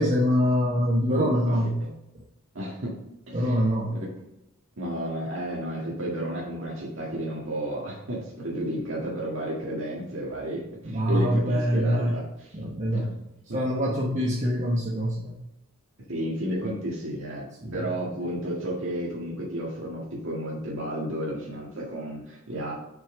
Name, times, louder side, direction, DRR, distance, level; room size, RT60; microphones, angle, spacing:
voice 1, 0.0-1.7 3.3-4.0 10.8-12.2 12.5-13.1 13.5-15.3 17.6-17.7, equal, 35° right, -4 dB, 1.1 m, -24 dB
voice 2, 1.1-1.9 2.5-3.0 3.3-3.6 3.9-4.1 4.8-12.6 12.9-13.2 13.5-13.6 16.1-22.7, right 1 dB, 60° right, -5 dB, 1.9 m, -32 dB
7.1 x 6.0 x 3.8 m, 0.87 s
head